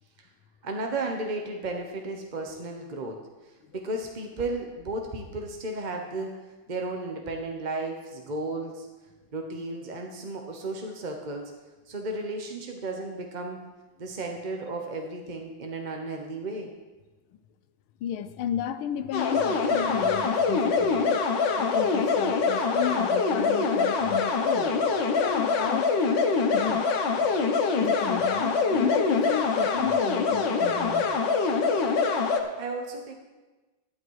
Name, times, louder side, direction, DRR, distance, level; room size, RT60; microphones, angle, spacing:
voice 1, 0.6-3.2 3.7-6.4 6.7-8.9 9.3-11.5 11.9-13.6 14.0-16.7 32.6-33.1, right 2 dB, 40° right, 2 dB, 0.6 m, -34 dB
voice 2, 18.0-21.2 21.6-24.8 25.1-26.0 26.5-26.9 27.4-27.5 27.8-31.2, left 10 dB, 80° left, 11 dB, 1.5 m, -33 dB
sound 1, 19.1-32.4, left 4 dB, 65° left, 1.7 m, -24 dB
12.0 x 10.0 x 4.7 m, 1.2 s
omnidirectional pair, 2.3 m